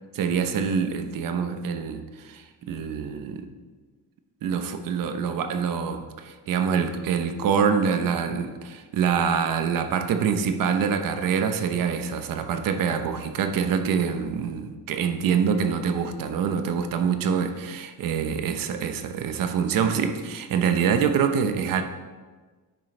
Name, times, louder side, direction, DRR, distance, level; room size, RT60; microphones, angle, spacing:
voice 1, 0.2-3.5 4.4-21.8, right 6 dB, 60° right, 7 dB, 0.9 m, -25 dB
10.0 x 9.1 x 3.3 m, 1.4 s
cardioid pair, 170°, 38 cm